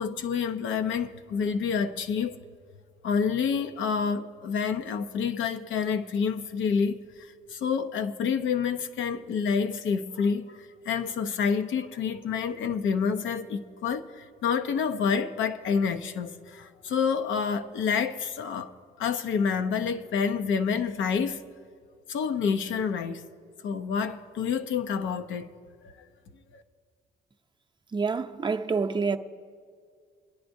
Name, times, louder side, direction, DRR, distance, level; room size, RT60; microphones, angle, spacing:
voice 1, 0.0-2.4 3.0-18.7 19.0-21.4 22.1-23.3 23.6-25.5 25.8-25.9 26.5-26.6, left 6 dB, 75° left, 0.7 m, -28 dB
voice 2, 27.9-29.2, right 5 dB, 25° right, 0.6 m, -27 dB
26.5 x 10.0 x 2.6 m
cardioid pair, 90°, 20 cm